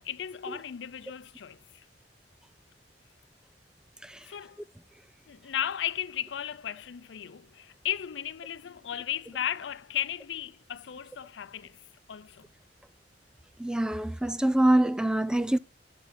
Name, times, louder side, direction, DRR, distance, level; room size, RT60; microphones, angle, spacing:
voice 1, 0.0-1.8 4.2-4.6 5.3-11.8 12.1-12.4, left 10 dB, 80° left, 0.5 m, -35 dB
voice 2, 13.6-15.6, right 1 dB, 5° right, 0.3 m, -25 dB
10.5 x 7.0 x 2.6 m
head